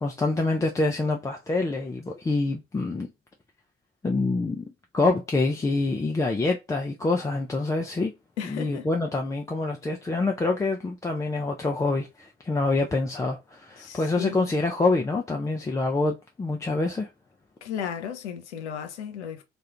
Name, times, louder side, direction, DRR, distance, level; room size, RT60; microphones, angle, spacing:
voice 1, 0.0-3.1 4.0-8.1 8.4-17.1, left 3 dB, 10° left, 0.3 m, -26 dB
voice 2, 8.4-8.9 13.8-14.5 17.6-19.4, left 8 dB, 80° left, 0.5 m, -35 dB
2.4 x 2.1 x 2.8 m
figure-of-eight pair, 50°, 34 cm